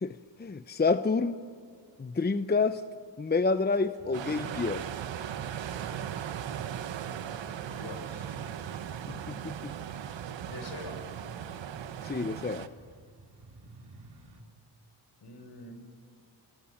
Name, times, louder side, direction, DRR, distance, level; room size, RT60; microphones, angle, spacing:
voice 1, 0.0-1.4 2.0-2.8 3.2-4.8 9.3-9.7 12.0-12.7, left 4 dB, 25° left, 11 dB, 0.8 m, -28 dB
sound 1, 3.5-14.4, right 2 dB, 60° right, 3.6 m, -53 dB
sound 2, 4.1-12.7, right 9 dB, 90° right, 1.2 m, -38 dB
voice 2, 7.6-8.3 10.4-11.0 15.2-15.7, left 2 dB, 65° left, 5 dB, 6.1 m, -44 dB
28.5 x 22.5 x 7.3 m, 2.2 s
cardioid pair, 80°, 43 cm